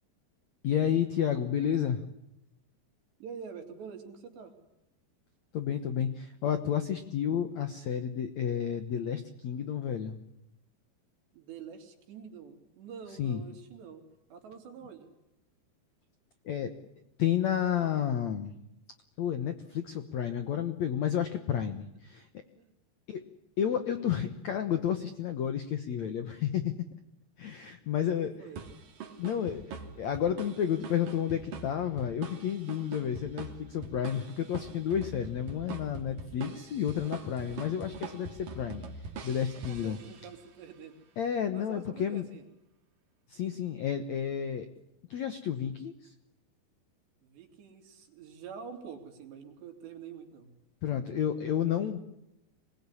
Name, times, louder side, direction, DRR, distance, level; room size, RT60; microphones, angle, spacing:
voice 1, 0.6-2.0 5.5-10.2 13.2-13.4 16.4-16.7 17.2-18.5 19.2-22.3 23.1-23.2 23.6-26.8 27.4-28.3 29.2-38.8 39.2-40.0 41.2-42.2 43.3-44.7 45.1-46.1 50.8-52.0, left 9 dB, 70° left, 9 dB, 1.7 m, -31 dB
voice 2, 3.2-4.5 11.3-14.0 14.3-15.1 22.6-22.7 28.0-28.6 39.7-41.0 41.5-42.4 47.2-50.5, right 6 dB, 80° right, 5 dB, 5.3 m, -46 dB
sound 1, 28.6-40.5, right 5 dB, 55° right, 4.1 m, -44 dB
26.0 x 20.0 x 9.8 m, 0.87 s
omnidirectional pair, 4.9 m